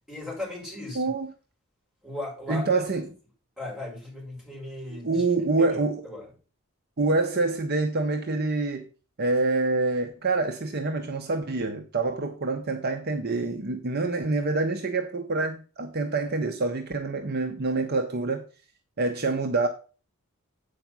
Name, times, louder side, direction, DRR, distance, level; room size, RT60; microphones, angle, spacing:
voice 1, 0.1-1.0 2.0-2.8 3.6-5.2 5.6-6.3, left 2 dB, 5° right, 5.1 m, -37 dB
voice 2, 0.9-1.3 2.5-3.0 4.9-6.0 7.0-8.9 9.2-18.4 19.0-19.7, right 3 dB, 45° right, 0.8 m, -26 dB
8.1 x 5.1 x 6.0 m
head